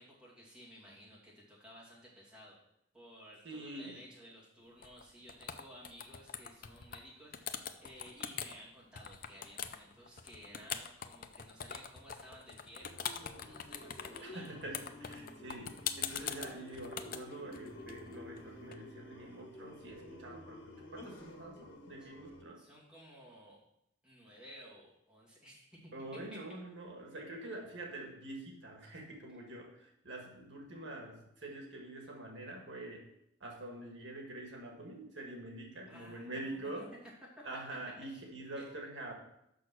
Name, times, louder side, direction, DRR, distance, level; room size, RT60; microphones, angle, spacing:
voice 1, 0.0-2.6 2.9-14.5 22.0-22.1 22.6-23.6 24.0-26.4 35.9-36.7 37.4-37.5 38.1-38.6, equal, 5° right, -6 dB, 2.4 m, -55 dB
voice 2, 3.4-4.0 14.2-22.6 25.9-33.1 33.4-36.9 37.4-39.1, right 2 dB, 75° right, 0 dB, 1.7 m, -46 dB
sound 1, 4.8-5.0 5.3-7.0 7.3-8.5 9.0-18.7, left 8 dB, 50° left, 0.5 m, -42 dB
sound 2, 12.8-22.4, left 1 dB, 85° left, 1.6 m, -51 dB
6.3 x 5.9 x 6.1 m, 0.80 s
head